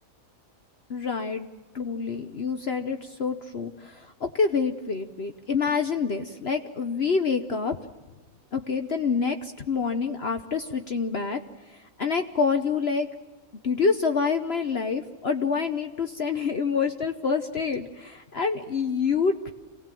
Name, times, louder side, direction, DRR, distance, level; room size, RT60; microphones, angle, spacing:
voice 1, 0.9-1.5 1.7-7.8 8.5-11.4 11.7-13.1 13.6-19.5, left 5 dB, 50° left, 6 dB, 1.1 m, -27 dB
27.0 x 18.5 x 7.6 m, 1.2 s
omnidirectional pair, 1.5 m